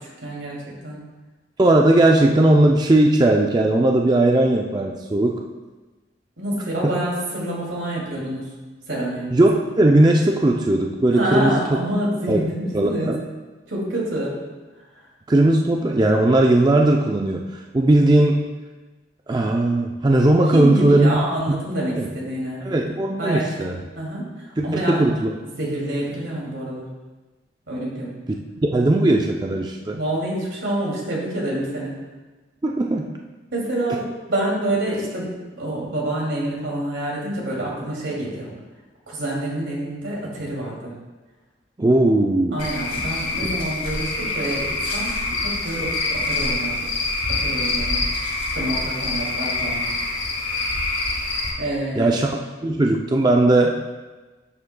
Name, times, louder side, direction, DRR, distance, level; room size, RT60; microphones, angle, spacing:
voice 1, 0.2-1.0 6.4-8.5 8.9-9.3 11.1-13.1 13.7-14.3 20.5-22.6 23.2-23.7 23.9-24.2 24.6-25.1 25.4-26.9 27.7-28.1 29.9-31.9 33.5-35.3 35.6-38.5 39.1-40.9 42.5-45.1 45.4-46.9 47.4-48.0 48.5-49.8 51.6-52.1, right 1 dB, 85° right, -3 dB, 2.5 m, -27 dB
voice 2, 1.6-5.4 6.8-7.0 9.3-11.6 12.3-12.4 12.7-13.2 15.3-17.5 17.7-18.4 19.3-21.2 21.5-21.6 21.9-22.1 22.6-23.8 24.6-25.3 28.7-30.0 32.6-33.1 41.8-42.7 52.0-52.3 52.6-53.8, right 1 dB, 20° right, 1 dB, 0.4 m, -18 dB
Cricket / Frog, 42.6-51.5, left 3 dB, 85° left, 1.7 m, -25 dB
10.5 x 7.2 x 2.2 m, 1.2 s
head